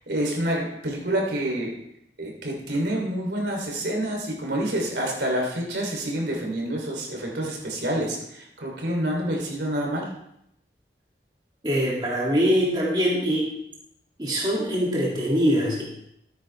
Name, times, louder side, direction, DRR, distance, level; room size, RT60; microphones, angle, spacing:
voice 1, 0.1-1.8 2.2-10.1, right 1 dB, 75° right, 0 dB, 3.0 m, -27 dB
voice 2, 11.6-13.5 14.2-15.8, equal, 25° right, -5 dB, 2.3 m, -23 dB
14.0 x 9.3 x 3.3 m, 0.78 s
head